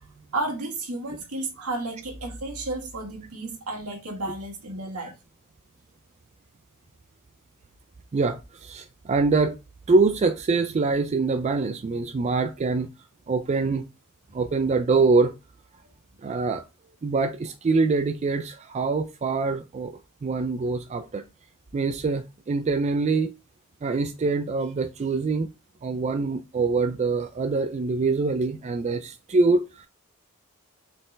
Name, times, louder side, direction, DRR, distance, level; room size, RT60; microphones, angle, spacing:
voice 1, 0.3-5.1, right 2 dB, 80° right, 1.7 m, -32 dB
voice 2, 8.1-9.6 9.9-12.9 13.3-13.9 14.3-15.3 16.2-16.6 17.0-21.2 21.7-23.3 23.8-25.5 25.8-29.9, right 3 dB, 30° right, 0.3 m, -24 dB
4.3 x 3.8 x 3.2 m
head